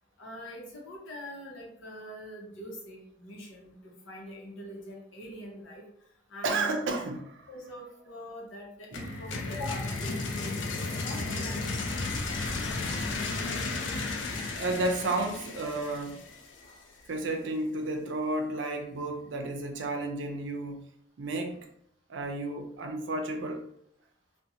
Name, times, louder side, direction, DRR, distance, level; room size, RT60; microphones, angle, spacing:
voice 1, 0.2-5.8 6.3-7.0 7.5-10.6 10.9-12.0, left 1 dB, 90° left, -1 dB, 0.8 m, -43 dB
voice 2, 6.4-7.2 8.9-9.1 14.6-16.2 16.6-16.8 17.1-20.9 21.2-21.6 22.1-23.6, right 2 dB, 70° right, 4 dB, 0.4 m, -32 dB
sound 1, 8.9-16.7, left 3 dB, 70° left, 0.4 m, -34 dB
sound 2, 9.0-9.9 11.8-15.5, equal, 10° right, 0.5 m, -49 dB
Squeak, 9.8-16.1 16.9-17.0, equal, 40° left, 0.9 m, -47 dB
2.7 x 2.2 x 2.5 m, 0.72 s
head